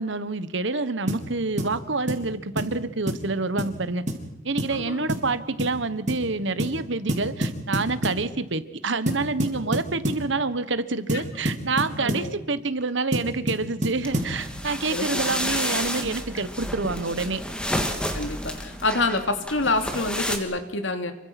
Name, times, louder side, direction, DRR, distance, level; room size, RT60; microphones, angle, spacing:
voice 1, 0.0-4.0 4.4-17.4, right 3 dB, 65° right, 13 dB, 1.4 m, -27 dB
sound 1, 1.1-1.3 1.6-1.8 2.1-2.3 2.6-2.7 3.1-3.3 3.6-3.8 4.1-4.2 4.6-4.8 5.1-5.3 5.6-5.8 6.1-6.2 6.6-6.8 7.1-8.2 9.1-10.3 11.1-12.3 13.1-14.4, equal, 40° right, 3.9 m, -28 dB
voice 2, 4.7-5.1 12.0-12.3 14.9-15.0 18.1-21.1, left 2 dB, 70° left, 7 dB, 2.7 m, -27 dB
sound 2, 14.0-20.4, equal, 5° left, 2.6 m, -30 dB
28.5 x 24.0 x 6.1 m, 0.93 s
head